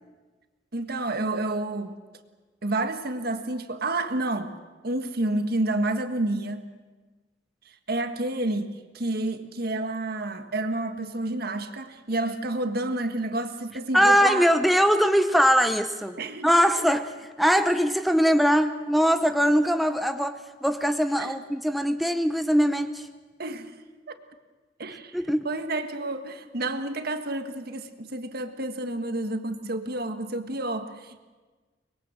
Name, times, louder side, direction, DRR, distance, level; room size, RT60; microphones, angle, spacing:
voice 1, 0.7-1.9 2.6-4.5 4.8-6.6 7.9-14.4 16.2-16.9 21.2-21.3 23.4-23.7 24.1-24.2 24.8-25.2 25.4-31.2, right 2 dB, 60° right, 8 dB, 1.6 m, -29 dB
voice 2, 13.9-16.2 16.4-23.1 25.1-25.5, equal, ahead, 8 dB, 0.7 m, -22 dB
24.5 x 21.5 x 7.6 m, 1.3 s
head